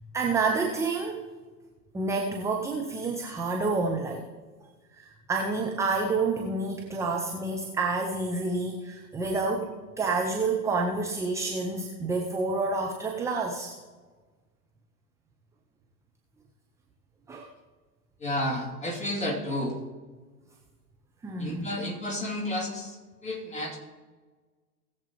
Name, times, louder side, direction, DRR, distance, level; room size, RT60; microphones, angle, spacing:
voice 1, 0.1-1.3 1.9-4.3 5.0-13.8 17.3-17.5 21.2-21.7, right 3 dB, 5° right, 1 dB, 0.6 m, -29 dB
voice 2, 18.2-19.8 21.4-23.0 23.2-23.8, left 1 dB, 15° left, -1 dB, 2.7 m, -31 dB
19.0 x 7.3 x 3.1 m, 1.4 s
figure-of-eight pair, 105°, 48 cm